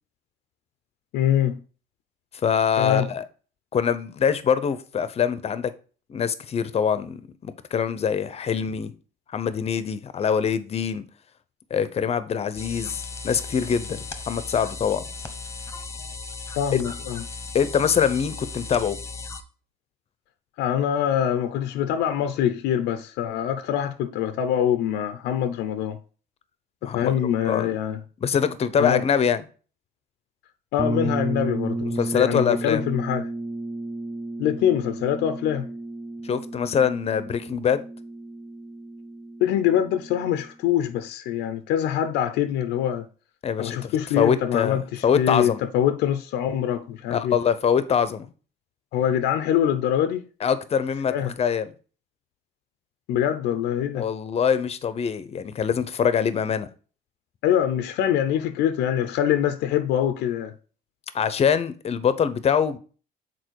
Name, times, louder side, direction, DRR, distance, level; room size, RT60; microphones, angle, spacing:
voice 1, 1.1-1.6 2.8-3.1 16.6-17.2 20.6-26.0 26.8-28.0 28.8-29.0 30.7-33.3 34.4-35.7 39.4-43.1 43.6-47.4 48.9-50.2 51.1-51.3 53.1-54.1 57.4-60.5, left 10 dB, 85° left, 0.6 m, -24 dB
voice 2, 2.4-3.2 3.7-5.7 6.1-8.9 9.3-11.0 11.7-15.0 16.7-16.8 17.5-19.0 26.8-27.1 27.4-27.7 28.2-29.4 32.0-32.8 36.2-37.8 43.4-45.6 47.1-48.3 50.4-51.7 53.9-56.7 61.1-62.8, left 7 dB, 35° left, 0.7 m, -24 dB
sound 1, 12.6-19.4, left 4 dB, 15° left, 1.1 m, -36 dB
sound 2, 30.8-40.5, right 2 dB, 25° right, 0.8 m, -32 dB
6.7 x 4.3 x 4.6 m
cardioid pair, 110°, 17 cm